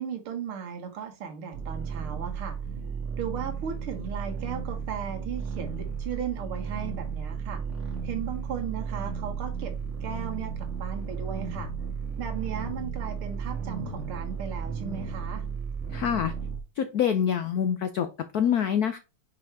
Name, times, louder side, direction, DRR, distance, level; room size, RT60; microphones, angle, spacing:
voice 1, 0.0-2.6 3.2-7.7 8.0-9.7 10.0-11.7 12.2-15.4, right 8 dB, 75° right, 2.2 m, -36 dB
sound 1, 1.5-16.6, right 6 dB, 35° right, 2.0 m, -34 dB
voice 2, 15.9-16.3 16.7-19.0, left 8 dB, 85° left, 0.8 m, -26 dB
5.9 x 5.0 x 4.5 m
omnidirectional pair, 2.4 m